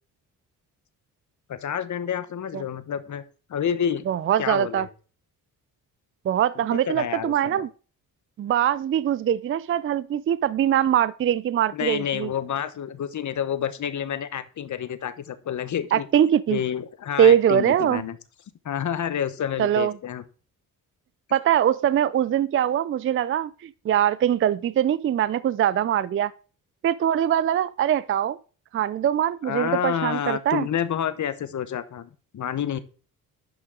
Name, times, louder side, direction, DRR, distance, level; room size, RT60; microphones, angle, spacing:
voice 1, 1.5-3.2 3.5-4.0 4.4-4.9 6.7-7.6 11.7-16.1 16.5-18.2 18.6-20.2 29.4-32.8, left 9 dB, 55° left, 1.1 m, -29 dB
voice 2, 4.1-4.9 6.3-7.7 8.4-12.3 15.9-16.6 17.2-18.0 19.6-19.9 21.3-26.3 26.8-28.4 28.7-30.7, right 10 dB, 35° right, 0.4 m, -22 dB
10.5 x 5.9 x 3.7 m
cardioid pair, 85°, 36 cm